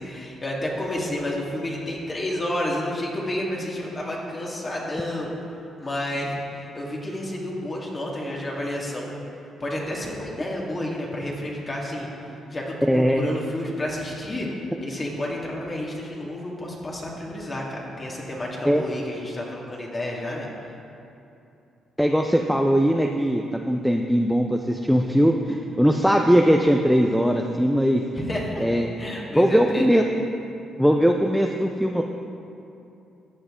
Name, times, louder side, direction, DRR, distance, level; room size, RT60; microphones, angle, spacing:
voice 1, 0.0-5.3 5.8-9.1 9.6-20.5 28.2-28.7 29.0-29.9, left 1 dB, 30° left, -3 dB, 2.0 m, -30 dB
voice 2, 12.9-13.3 18.7-18.8 22.0-28.0 28.6-28.9 29.4-30.0 30.8-32.0, equal, ahead, 2 dB, 0.5 m, -20 dB
14.0 x 7.9 x 3.7 m, 2.8 s
cardioid pair, 90°, 0 cm